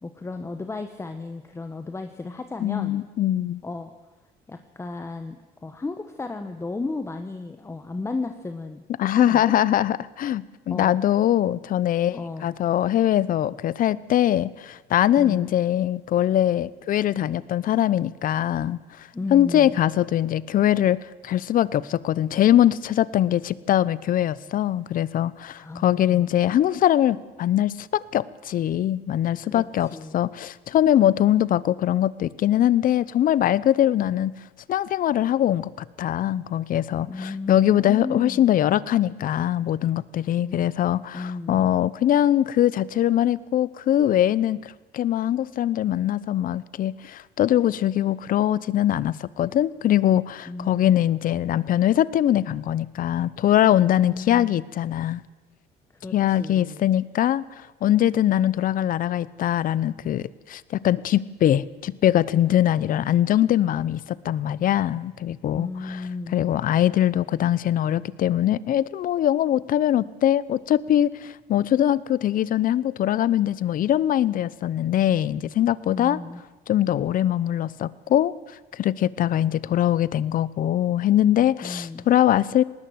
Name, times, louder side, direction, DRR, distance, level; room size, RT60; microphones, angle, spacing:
voice 1, 0.0-3.0 3.6-3.9 4.5-8.8 9.1-9.5 10.7-11.0 12.1-12.5 15.2-15.5 19.1-19.8 25.5-26.3 29.4-30.2 37.1-38.4 40.4-40.7 41.1-41.7 50.5-51.1 54.0-54.5 56.0-56.9 65.5-66.4 75.9-76.4 81.6-82.1, left 3 dB, 15° left, 7 dB, 1.1 m, -34 dB
voice 2, 2.6-3.6 9.0-34.3 34.7-35.7 36.0-55.2 56.1-66.0 66.3-76.2 76.7-78.3 78.7-82.6, left 11 dB, 55° left, 20 dB, 0.7 m, -22 dB
19.5 x 19.0 x 8.0 m, 1.2 s
cardioid pair, 110°, 17 cm